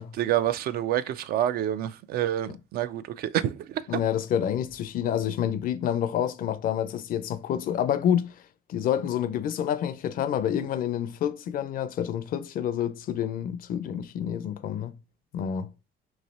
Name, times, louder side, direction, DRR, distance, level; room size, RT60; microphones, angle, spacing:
voice 1, 0.2-4.0, right 12 dB, 65° right, 0.4 m, -28 dB
voice 2, 3.9-8.4 8.7-14.9 15.3-15.7, left 9 dB, 55° left, 0.5 m, -28 dB
3.2 x 2.7 x 4.1 m
cardioid pair, 110°, 17 cm